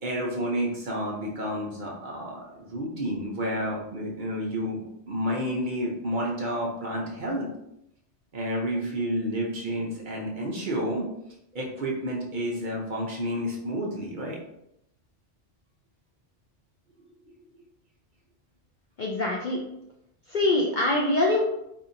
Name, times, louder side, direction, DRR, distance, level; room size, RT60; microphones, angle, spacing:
voice 1, 0.0-7.5 8.3-11.0 11.5-14.4, equal, 50° right, -2 dB, 0.7 m, -30 dB
voice 2, 19.0-19.6 20.3-21.4, left 2 dB, 60° left, -1 dB, 0.5 m, -24 dB
4.1 x 2.7 x 2.6 m, 0.81 s
omnidirectional pair, 1.2 m